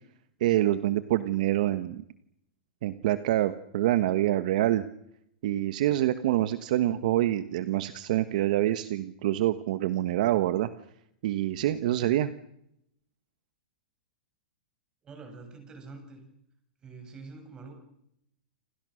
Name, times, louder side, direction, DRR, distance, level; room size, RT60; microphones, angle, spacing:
voice 1, 0.4-2.0 2.8-4.8 5.4-10.7 11.2-12.3, right 14 dB, 50° right, 12 dB, 1.4 m, -26 dB
voice 2, 15.0-16.2 16.8-17.7, right 4 dB, 15° right, 5 dB, 7.5 m, -45 dB
29.0 x 27.0 x 6.5 m, 0.78 s
supercardioid pair, 165°, 5 cm